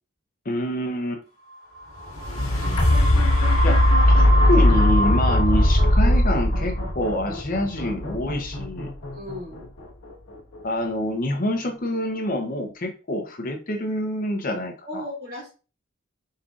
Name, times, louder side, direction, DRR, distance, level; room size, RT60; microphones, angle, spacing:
voice 1, 0.4-1.2 3.6-8.9 10.6-15.0, left 1 dB, 40° left, 3 dB, 0.7 m, -26 dB
sound 1, 2.0-10.0 10.6-10.7, left 1 dB, 75° left, 1.4 m, -19 dB
voice 2, 9.1-9.7 14.8-15.5, left 1 dB, 45° right, -7 dB, 1.5 m, -35 dB
5.4 x 3.6 x 2.5 m, 0.34 s
head